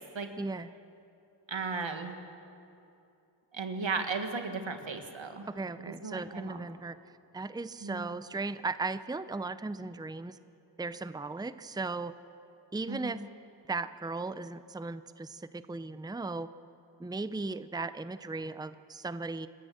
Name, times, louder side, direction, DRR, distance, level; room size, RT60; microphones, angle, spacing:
voice 1, 0.4-0.7 5.5-7.0 7.3-10.4 10.8-12.1 12.7-13.2 13.7-16.5 17.0-19.5, right 3 dB, 10° right, 13 dB, 0.6 m, -37 dB
voice 2, 1.5-2.2 3.5-5.5 5.8-6.6 7.8-8.1 12.9-13.2, right 4 dB, 85° right, 6 dB, 1.7 m, -36 dB
26.0 x 13.5 x 7.7 m, 2.8 s
wide cardioid pair, 45°, 44 cm